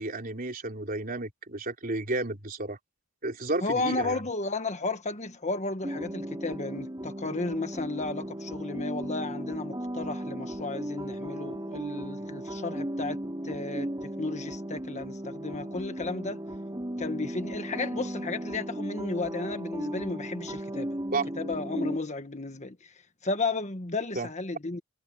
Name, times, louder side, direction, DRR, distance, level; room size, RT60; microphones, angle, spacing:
voice 1, 0.0-2.8 3.2-4.2 21.1-21.3 24.2-24.3, right 2 dB, 45° right, 3.6 m, -32 dB
voice 2, 3.6-16.4 17.0-20.9 21.4-22.9 23.2-24.8, left 3 dB, 35° left, 1.5 m, -33 dB
sound 1, 5.8-22.0, right 1 dB, 20° right, 4.5 m, -36 dB
head